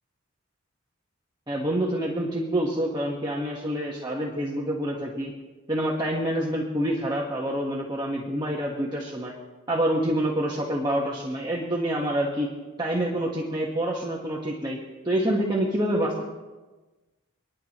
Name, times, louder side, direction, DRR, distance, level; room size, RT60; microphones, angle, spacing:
voice 1, 1.5-5.3 5.7-9.3 9.7-12.5 12.8-14.8 15.0-16.2, right 1 dB, 20° right, -4 dB, 1.4 m, -27 dB
30.0 x 10.5 x 3.1 m, 1.2 s
head